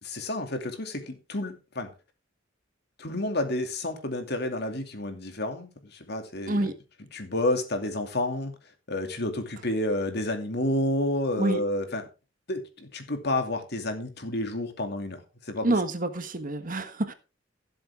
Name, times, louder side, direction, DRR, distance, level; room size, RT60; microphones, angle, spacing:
voice 1, 0.0-1.9 3.0-6.7 7.1-8.5 8.9-12.0 12.5-15.2 15.5-15.8, left 1 dB, 60° left, 2.5 m, -30 dB
voice 2, 15.6-17.1, right 2 dB, 45° right, 1.4 m, -27 dB
16.0 x 7.9 x 3.6 m
head